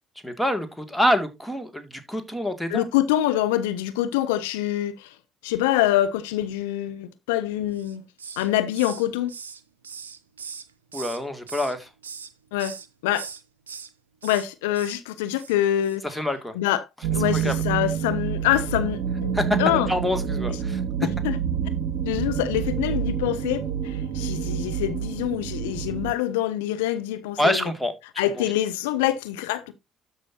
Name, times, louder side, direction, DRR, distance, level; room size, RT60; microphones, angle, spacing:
voice 1, 0.2-2.9 10.9-11.9 16.0-16.5 17.3-17.5 19.3-19.4 19.7-20.8 27.4-27.9 28.4-28.5, left 1 dB, 5° left, 2.3 m, -26 dB
voice 2, 2.7-5.1 5.4-8.0 8.4-9.3 12.5-12.8 13.0-13.3 14.2-16.0 16.5-16.9 17.1-19.3 19.6-19.9 21.0-21.4 22.1-27.7 28.2-29.7, left 13 dB, 80° left, 0.6 m, -25 dB
Hiss, 7.7-8.5 8.7-11.2 11.5-12.3 12.6-12.9 13.1-13.9 14.2-14.5 14.7-15.0 15.3-15.6 15.8-16.0, right 6 dB, 90° right, 0.5 m, -40 dB
sound 1, 17.0-26.1, right 8 dB, 70° right, 0.8 m, -28 dB
13.0 x 5.5 x 2.8 m
hypercardioid pair, 50°, 0 cm